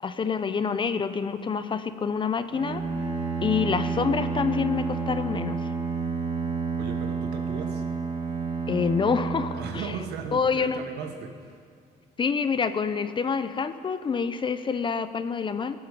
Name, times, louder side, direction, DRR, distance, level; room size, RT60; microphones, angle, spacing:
voice 1, 0.0-2.8 3.4-5.6 8.7-9.6 10.3-10.8 12.2-15.8, left 5 dB, 30° left, 12 dB, 0.6 m, -27 dB
Bowed string instrument, 2.5-10.5, right 5 dB, 40° right, 3.7 m, -30 dB
voice 2, 6.8-7.8 9.5-11.6, right 6 dB, 75° right, 5 dB, 1.6 m, -37 dB
19.0 x 8.8 x 5.3 m, 2.2 s
cardioid pair, 110°, 17 cm